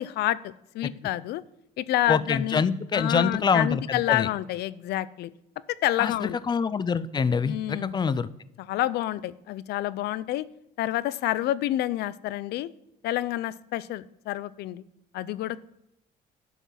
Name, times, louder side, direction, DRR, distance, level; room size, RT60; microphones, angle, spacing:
voice 1, 0.0-1.4 1.8-2.6 2.9-5.3 5.7-6.4 7.4-7.9 8.6-10.5 10.8-12.7 13.0-14.8 15.1-15.6, left 14 dB, 75° left, 18 dB, 0.5 m, -28 dB
voice 2, 2.1-4.3 6.0-8.3, left 5 dB, 25° left, 17 dB, 0.5 m, -25 dB
11.5 x 5.9 x 5.8 m, 0.83 s
cardioid pair, 110°, 17 cm